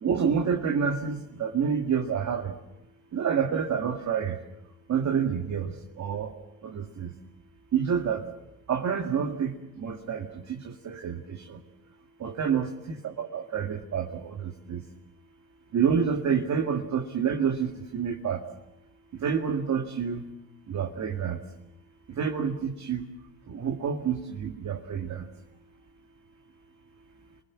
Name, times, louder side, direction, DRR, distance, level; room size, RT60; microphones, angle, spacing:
voice 1, 0.0-2.5 3.1-4.3 4.9-5.7 6.0-6.3 6.7-7.1 7.7-8.2 8.7-9.5 9.8-10.3 10.8-11.2 11.5-11.6 12.2-14.8 15.7-18.4 19.2-20.2 20.7-21.4 22.2-23.0 23.5-25.1, right 7 dB, 45° right, 2 dB, 2.2 m, -28 dB
27.5 x 20.5 x 7.3 m, 0.90 s
supercardioid pair, 80°, 37 cm